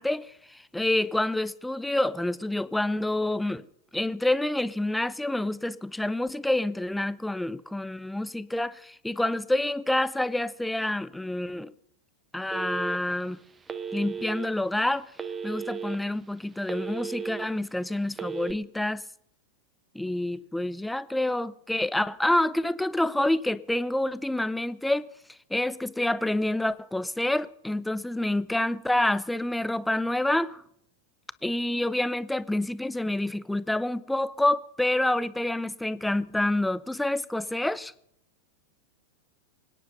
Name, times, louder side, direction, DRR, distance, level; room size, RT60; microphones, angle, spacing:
voice 1, 0.0-3.7 3.9-11.7 12.3-13.4 13.9-15.0 15.4-19.0 19.9-25.1 25.5-30.6 31.4-37.9, left 1 dB, 5° left, 0.6 m, -27 dB
Telephone, 12.5-13.2 13.7-14.5 15.2-15.9 16.4-17.4 18.1-18.5, right 6 dB, 15° right, 1.1 m, -35 dB
24.5 x 10.0 x 5.4 m
figure-of-eight pair, 90°, 0 cm